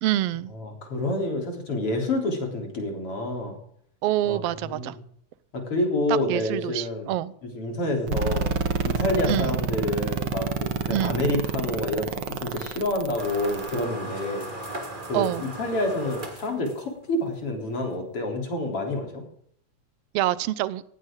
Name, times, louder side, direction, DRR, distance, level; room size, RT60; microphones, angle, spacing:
voice 1, 0.0-0.5 4.0-4.9 6.1-7.3 9.3-9.6 10.9-11.2 15.1-15.5 20.1-20.8, right 14 dB, 75° right, 17 dB, 1.6 m, -26 dB
voice 2, 0.5-3.6 4.2-5.0 5.5-7.1 7.4-8.4 8.8-14.5 15.1-19.2, left 2 dB, 50° left, 1 dB, 4.5 m, -28 dB
sound 1, 8.1-13.8, right 5 dB, 55° right, 2.0 m, -28 dB
sound 2, 13.2-17.2, right 1 dB, 15° right, 2.3 m, -37 dB
19.0 x 15.5 x 3.8 m, 0.66 s
omnidirectional pair, 3.3 m